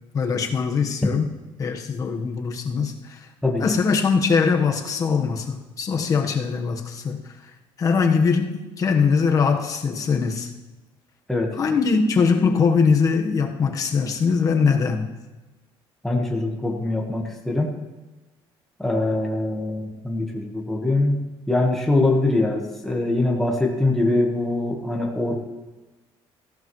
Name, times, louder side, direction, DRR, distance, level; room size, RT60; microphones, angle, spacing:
voice 1, 0.1-1.3 1.6-3.3 3.6-7.2 7.8-10.5 11.6-15.1, left 5 dB, 35° left, 4 dB, 1.2 m, -21 dB
voice 2, 16.0-17.7 18.8-25.4, left 2 dB, 5° left, -1 dB, 1.4 m, -23 dB
18.0 x 15.5 x 3.1 m, 1.1 s
cardioid pair, 160°, 10 cm